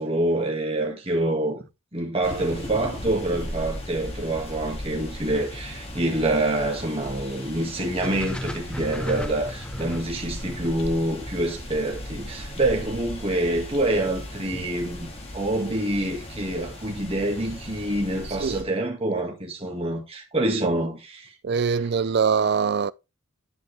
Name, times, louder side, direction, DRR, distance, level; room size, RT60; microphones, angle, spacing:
voice 1, 0.0-1.7 1.9-21.3, right 1 dB, 25° right, 2.0 m, -26 dB
sound 1, 2.2-18.6, left 1 dB, 30° left, 1.9 m, -37 dB
sound 2, 8.0-12.2, equal, 5° left, 0.5 m, -36 dB
voice 2, 18.2-18.7 21.4-22.9, right 6 dB, 50° right, 0.4 m, -23 dB
10.5 x 5.3 x 3.5 m
head